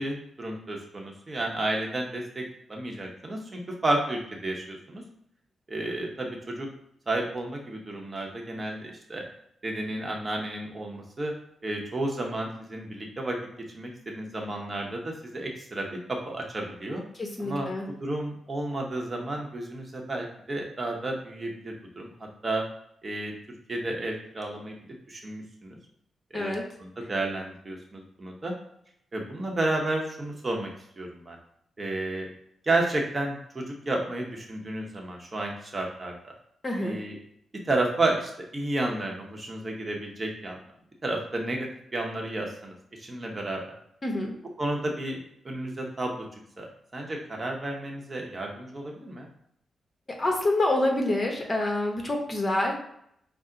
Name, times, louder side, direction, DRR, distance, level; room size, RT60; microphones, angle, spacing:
voice 1, 0.0-2.4 2.7-5.0 5.7-6.7 7.1-9.2 9.6-11.3 11.6-13.4 13.7-17.0 17.4-17.7 18.0-22.1 22.4-22.6 23.0-23.3 23.7-24.8 25.1-25.8 26.3-28.5 29.1-30.7 31.0-31.4 31.8-32.3 32.6-36.1 36.8-37.2 37.6-40.6 41.0-43.6 44.6-46.2 46.6-49.3, right 2 dB, 30° right, 0 dB, 0.9 m, -31 dB
voice 2, 17.2-17.8 26.3-26.6 36.6-37.0 44.0-44.3 50.2-52.7, left 1 dB, 30° left, 1 dB, 1.1 m, -27 dB
5.6 x 2.1 x 3.8 m, 0.72 s
cardioid pair, 65°, 0 cm